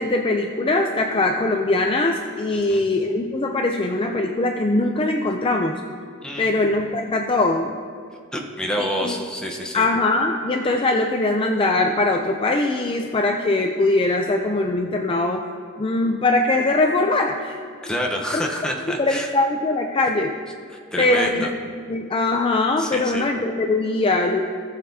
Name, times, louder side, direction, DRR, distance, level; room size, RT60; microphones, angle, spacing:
voice 1, 0.0-5.8 6.4-7.7 8.8-9.1 9.7-15.4 15.8-17.6 19.0-20.3 21.0-21.5 21.9-24.4, left 2 dB, 25° left, 3 dB, 0.4 m, -21 dB
voice 2, 2.5-2.8 6.2-6.5 8.3-9.8 17.8-19.3 20.9-21.5 22.8-23.3, equal, 5° left, -1 dB, 0.9 m, -27 dB
18.0 x 6.6 x 2.7 m, 2.3 s
head